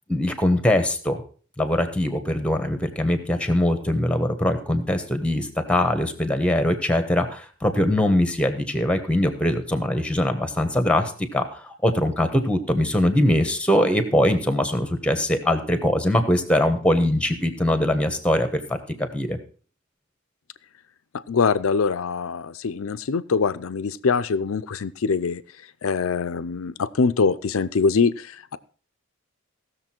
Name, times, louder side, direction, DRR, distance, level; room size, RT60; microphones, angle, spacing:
voice 1, 0.1-1.2 1.6-19.4, left 1 dB, 5° left, 8 dB, 1.2 m, -22 dB
voice 2, 21.3-25.4 25.8-28.6, left 5 dB, 75° left, 14 dB, 0.5 m, -23 dB
16.5 x 6.8 x 4.4 m, 0.41 s
head